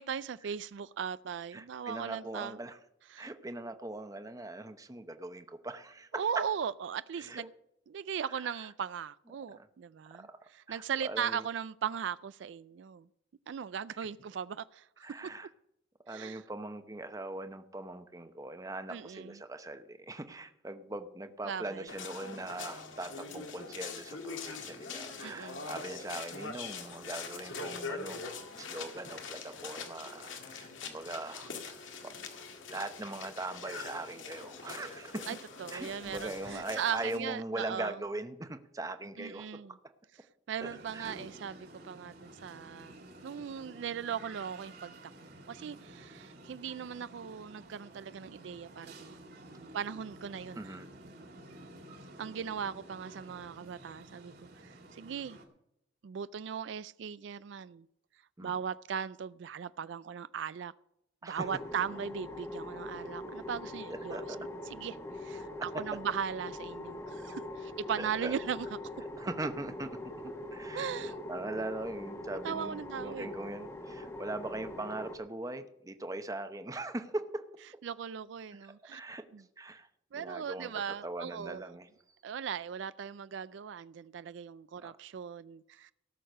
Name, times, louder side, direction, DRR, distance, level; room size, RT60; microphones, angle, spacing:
voice 1, 0.0-2.6 3.1-3.3 6.2-7.5 7.9-13.1 13.5-15.0 16.1-16.4 18.9-19.4 21.4-21.9 25.2-25.7 35.3-38.0 39.2-39.7 40.5-45.0 45.5-50.7 52.2-54.3 54.6-55.4 56.0-57.8 58.4-60.7 61.2-64.2 64.7-68.7 70.7-71.2 72.4-73.3 77.8-79.0 79.3-79.4 80.1-81.7 82.2-85.9, right 7 dB, 70° right, 0.3 m, -38 dB
voice 2, 1.5-2.8 3.2-6.4 7.2-7.5 8.3-8.7 9.5-9.7 10.1-10.3 10.7-11.4 15.0-15.5 16.1-32.1 32.7-35.3 35.7-39.5 40.6-41.2 50.6-50.9 58.4-58.6 61.2-61.5 63.9-64.4 65.7-65.8 68.0-68.4 69.2-70.0 70.2-77.4 78.9-79.2 79.6-79.9 80.2-80.7 81.0-81.9 84.8-84.9, right 2 dB, 20° right, 0.8 m, -41 dB
sound 1, 21.9-37.2, left 4 dB, 90° left, 2.0 m, -43 dB
sound 2, 40.6-55.4, right 1 dB, 55° right, 2.3 m, -52 dB
sound 3, 61.4-75.2, left 1 dB, 15° left, 1.1 m, -42 dB
17.5 x 6.6 x 6.5 m
head